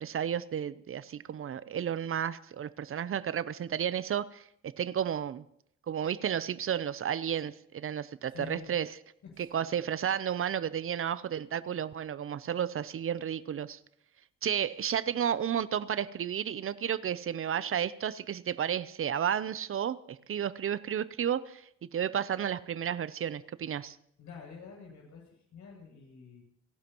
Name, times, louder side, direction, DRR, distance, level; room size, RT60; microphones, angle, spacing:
voice 1, 0.0-5.4 5.9-8.9 9.5-13.8 14.4-24.0, right 9 dB, 45° right, 0.6 m, -32 dB
voice 2, 8.3-8.7 9.3-9.6 24.2-26.4, left 6 dB, 70° left, 7.6 m, -48 dB
30.0 x 11.5 x 3.0 m
cardioid pair, 90°, 30 cm